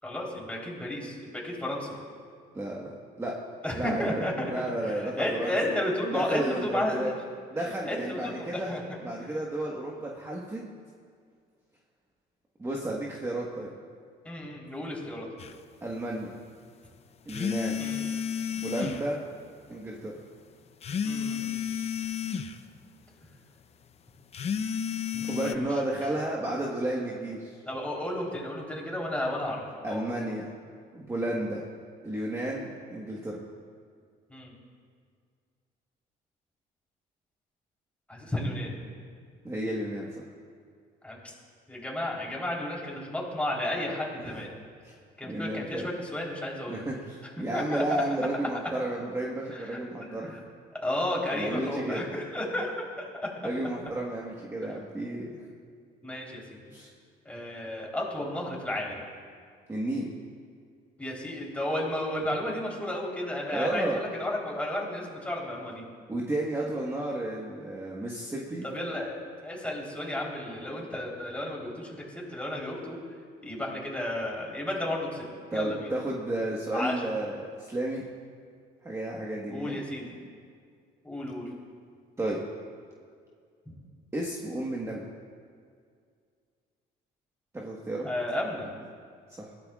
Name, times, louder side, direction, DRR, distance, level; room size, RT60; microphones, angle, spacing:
voice 1, 0.0-1.9 3.6-4.5 4.9-7.1 7.9-9.3 14.2-15.3 17.8-18.0 18.7-19.0 21.0-21.6 25.1-25.7 27.7-30.0 34.3-34.5 38.1-38.7 41.0-41.3 41.7-44.5 45.2-46.8 47.5-47.8 49.5-50.4 50.8-52.8 53.1-53.3 56.0-56.6 57.3-59.0 61.0-65.8 68.6-69.2 69.4-73.0 73.4-75.2 75.5-75.9 76.7-77.1 79.5-80.2 81.0-81.5 83.7-83.8 88.0-88.7, left 1 dB, 5° left, -3 dB, 3.7 m, -33 dB
voice 2, 2.5-3.4 3.8-5.5 6.1-7.1 7.5-8.8 9.0-10.6 12.6-13.7 15.8-16.3 17.3-17.9 18.5-19.2 19.7-20.1 25.2-27.6 29.8-30.4 30.9-31.6 32.0-33.4 39.4-40.1 44.2-44.4 44.8-44.9 45.3-45.9 46.7-50.4 51.3-52.0 53.4-55.3 56.7-56.9 59.7-60.1 63.5-64.0 66.1-68.7 75.5-78.0 78.8-79.8 82.2-82.4 84.1-85.1 87.5-88.1 89.4-89.5, right 1 dB, 15° right, -3 dB, 1.4 m, -32 dB
sound 1, 15.4-15.5 17.3-19.1 20.8-22.6 24.3-25.6, left 7 dB, 40° left, 0.6 m, -31 dB
21.5 x 15.0 x 2.4 m, 2.1 s
cardioid pair, 110°, 17 cm